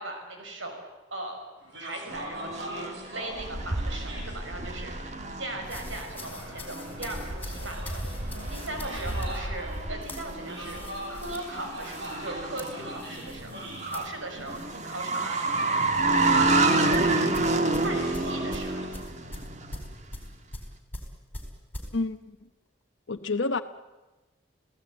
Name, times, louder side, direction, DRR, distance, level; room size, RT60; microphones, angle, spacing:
voice 1, 0.0-1.4 1.8-4.9 5.4-8.0 8.5-10.8 11.1-13.5 13.9-15.7 16.1-17.4 17.8-18.8, right 2 dB, 80° right, 3 dB, 6.0 m, -38 dB
sound 1, 1.6-18.9, right 1 dB, 60° right, 7.8 m, -42 dB
sound 2, 2.1-20.1, right 2 dB, 35° right, 1.6 m, -29 dB
sound 3, 5.6-15.3 15.6-15.9 16.9-21.9, left 1 dB, 10° left, 4.3 m, -44 dB
voice 2, 21.9-22.4 23.1-23.6, left 3 dB, 70° left, 8 dB, 1.0 m, -28 dB
30.0 x 17.0 x 8.8 m, 1.1 s
head